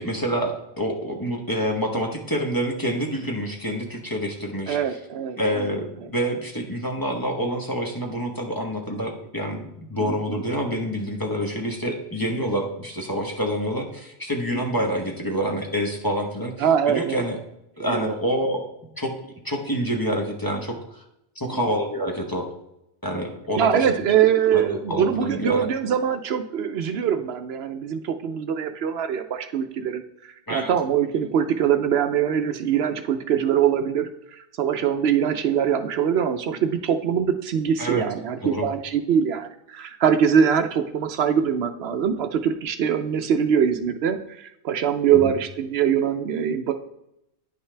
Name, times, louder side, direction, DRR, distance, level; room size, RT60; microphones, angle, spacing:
voice 1, 0.0-5.0 5.4-16.5 16.9-17.4 17.8-18.6 19.0-19.1 19.4-21.0 21.4-22.4 23.0-23.9 24.5-25.7 30.5-30.7 37.8-38.1 38.4-38.7 45.1-45.3, equal, 20° left, 1 dB, 0.9 m, -27 dB
voice 2, 4.7-5.7 10.0-10.4 16.6-17.2 17.9-18.1 21.5-21.6 23.6-46.7, right 8 dB, 70° right, 8 dB, 0.8 m, -23 dB
10.0 x 5.5 x 3.3 m, 0.83 s
omnidirectional pair, 1.1 m